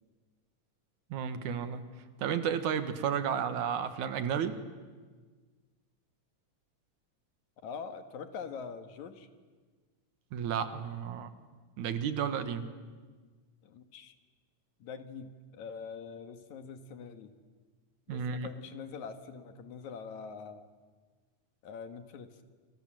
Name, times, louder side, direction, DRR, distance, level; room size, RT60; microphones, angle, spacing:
voice 1, 1.1-1.8 2.2-4.6 10.3-11.3 11.8-12.7 18.1-18.5, right 8 dB, 90° right, 10 dB, 2.9 m, -32 dB
voice 2, 7.6-9.3 13.6-14.1 14.8-17.3 18.1-20.7 21.6-22.4, left 5 dB, 75° left, 8 dB, 3.0 m, -44 dB
28.0 x 27.5 x 7.7 m, 1.4 s
omnidirectional pair, 3.3 m